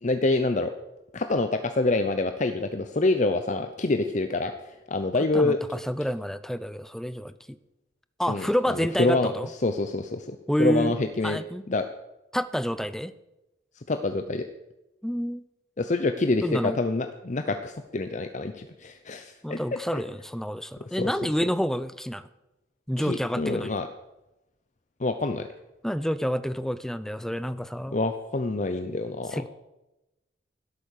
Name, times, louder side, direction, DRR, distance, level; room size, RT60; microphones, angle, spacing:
voice 1, 0.0-0.7 1.1-5.6 8.3-9.3 9.6-11.4 11.7-11.8 13.9-14.5 15.8-20.0 21.0-21.1 23.0-23.9 25.0-25.5 27.9-29.4, left 2 dB, 40° left, 8 dB, 0.7 m, -26 dB
voice 2, 5.3-7.6 8.2-9.5 10.5-10.9 11.2-11.6 12.3-13.1 15.0-15.4 16.4-16.8 19.4-22.3 22.9-23.8 25.8-28.0 29.3-29.5, equal, ahead, 14 dB, 0.5 m, -28 dB
16.5 x 8.5 x 6.5 m, 0.97 s
head